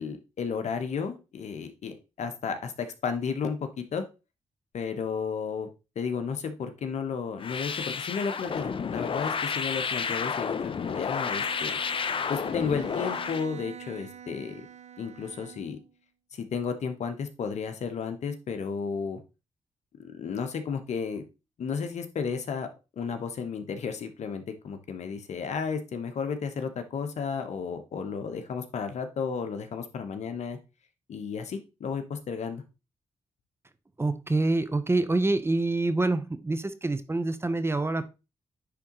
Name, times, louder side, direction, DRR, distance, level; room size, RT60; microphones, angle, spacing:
voice 1, 0.0-4.0 4.7-5.7 5.9-11.8 12.3-14.7 15.0-15.8 16.3-19.2 20.0-21.2 21.6-22.7 23.0-30.6 31.1-32.6, left 6 dB, 70° left, 7 dB, 1.1 m, -33 dB
sound 1, 7.4-13.5, left 6 dB, 45° left, 0.6 m, -31 dB
Bowed string instrument, 10.7-15.9, right 8 dB, 70° right, 0.8 m, -47 dB
voice 2, 34.0-38.1, right 2 dB, 20° right, 12 dB, 0.7 m, -26 dB
9.8 x 3.6 x 3.0 m, 0.28 s
cardioid pair, 65°, 12 cm